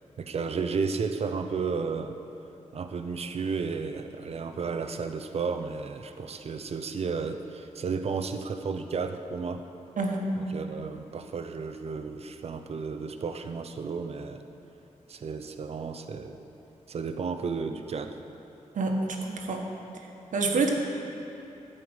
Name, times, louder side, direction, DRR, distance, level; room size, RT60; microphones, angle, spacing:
voice 1, 0.2-2.2 2.7-9.6 10.4-14.4 15.1-16.4 16.9-18.2, right 5 dB, 55° right, 7 dB, 0.7 m, -33 dB
voice 2, 10.0-10.3 18.7-19.6 20.3-20.7, right 3 dB, 85° right, 1 dB, 1.4 m, -27 dB
13.5 x 5.2 x 8.0 m, 2.9 s
wide cardioid pair, 120°, 13 cm